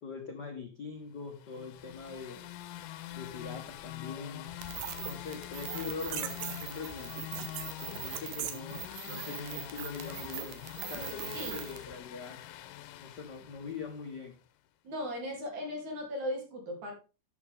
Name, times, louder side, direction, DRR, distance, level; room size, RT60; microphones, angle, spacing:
voice 1, 0.0-2.4 3.1-4.5 5.0-7.1 7.8-10.6 10.9-12.4 13.0-14.4, left 5 dB, 50° left, 2 dB, 1.2 m, -42 dB
sound 1, 1.4-14.3, left 13 dB, 85° left, 2.3 m, -45 dB
sound 2, 4.6-11.8, right 10 dB, 80° right, 2.7 m, -41 dB
voice 2, 14.8-16.9, left 1 dB, 60° right, 1 dB, 4.6 m, -37 dB
12.0 x 8.7 x 3.6 m, 0.31 s
omnidirectional pair, 3.8 m